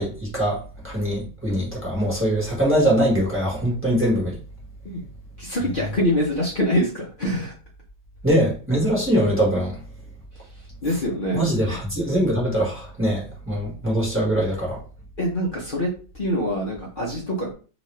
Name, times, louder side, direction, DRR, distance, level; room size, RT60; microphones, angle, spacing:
voice 1, 0.0-4.3 8.2-9.7 11.3-14.8, equal, 10° right, -5 dB, 1.1 m, -22 dB
voice 2, 5.4-7.5 10.8-11.8 15.2-17.5, equal, 80° left, -4 dB, 0.4 m, -25 dB
3.0 x 2.9 x 3.1 m, 0.37 s
omnidirectional pair, 2.1 m